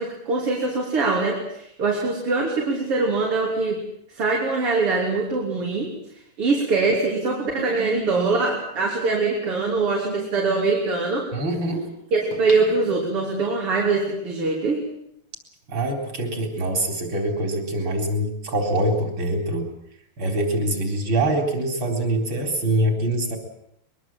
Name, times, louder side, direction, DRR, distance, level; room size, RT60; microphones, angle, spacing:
voice 1, 0.0-3.8 4.2-6.0 6.4-11.3 12.1-14.8, right 3 dB, 85° right, -2 dB, 4.4 m, -23 dB
sound 1, 8.7-8.8 12.3-13.6 14.1-14.2, left 2 dB, 80° left, 5.8 m, -41 dB
voice 2, 11.3-11.9 15.7-19.7 20.2-23.4, right 1 dB, 60° right, 3 dB, 4.9 m, -24 dB
22.5 x 22.0 x 7.5 m, 0.75 s
omnidirectional pair, 2.4 m